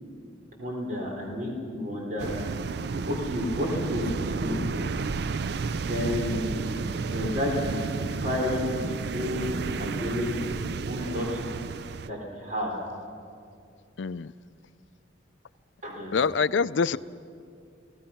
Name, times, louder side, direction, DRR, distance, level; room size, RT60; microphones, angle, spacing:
voice 1, 0.6-2.3 3.1-4.6 5.7-6.7 7.0-11.4 12.0-12.8 15.8-16.2, left 1 dB, 40° right, -1 dB, 3.9 m, -31 dB
sound 1, 2.2-12.1, right 4 dB, 55° right, 0.4 m, -32 dB
voice 2, 14.0-14.3 16.1-17.0, left 5 dB, 70° left, 16 dB, 0.4 m, -25 dB
29.5 x 18.0 x 5.8 m, 2.4 s
head